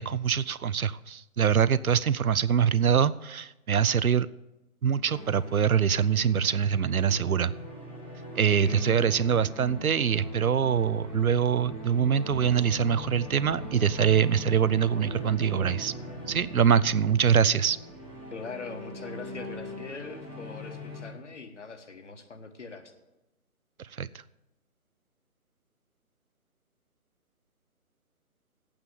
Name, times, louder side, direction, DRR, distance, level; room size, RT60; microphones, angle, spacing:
voice 1, 0.0-4.3 4.8-7.5 8.4-15.9 16.3-17.8 23.8-24.1, right 7 dB, 75° right, 18 dB, 0.5 m, -24 dB
sound 1, 5.1-21.1, left 1 dB, 10° left, 0.6 m, -42 dB
voice 2, 8.6-9.2 18.3-22.9, left 4 dB, 55° left, 7 dB, 1.5 m, -41 dB
sound 2, 12.3-17.4, right 1 dB, 30° right, 1.3 m, -43 dB
8.7 x 7.6 x 8.4 m, 0.98 s
figure-of-eight pair, 145°, 44 cm